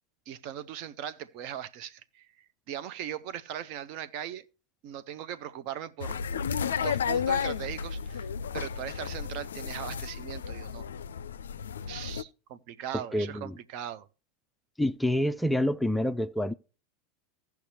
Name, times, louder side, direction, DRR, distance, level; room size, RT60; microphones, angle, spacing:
voice 1, 0.3-4.5 4.8-6.2 6.7-8.3 8.5-10.9 11.9-14.1, right 10 dB, 50° right, 0.6 m, -39 dB
sound 1, 6.0-12.2, left 7 dB, 75° left, 0.3 m, -33 dB
voice 2, 12.9-13.5 14.8-16.5, left 1 dB, 5° left, 0.4 m, -27 dB
16.5 x 5.8 x 2.9 m
figure-of-eight pair, 85°, 0 cm